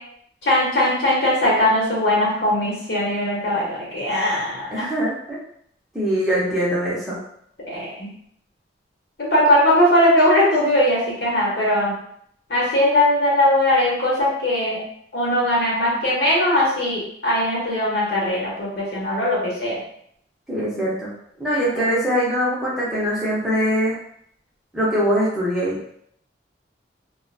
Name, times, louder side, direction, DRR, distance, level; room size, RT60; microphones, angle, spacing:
voice 1, 0.4-4.9 7.7-8.1 9.2-11.9 12.5-14.8 15.1-19.8 21.8-21.9, left 1 dB, 60° left, -5 dB, 0.9 m, -20 dB
voice 2, 4.7-5.4 5.9-7.2 20.5-21.1 21.4-24.0 24.7-25.8, equal, ahead, -8 dB, 0.7 m, -22 dB
2.4 x 2.2 x 2.6 m, 0.68 s
head